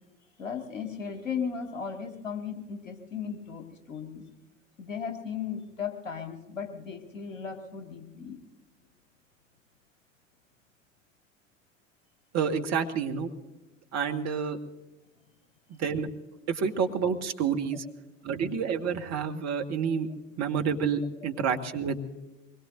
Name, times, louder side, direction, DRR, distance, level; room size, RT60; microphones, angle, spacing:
voice 1, 0.4-4.2 4.8-8.4 21.2-21.3, left 6 dB, 80° left, 6 dB, 2.0 m, -36 dB
voice 2, 12.3-13.3 13.9-14.6 15.7-16.1 16.5-17.8 18.2-20.1 20.4-22.0, right 6 dB, 40° right, 5 dB, 1.6 m, -29 dB
23.5 x 21.0 x 2.6 m, 1.1 s
figure-of-eight pair, 65°, 39 cm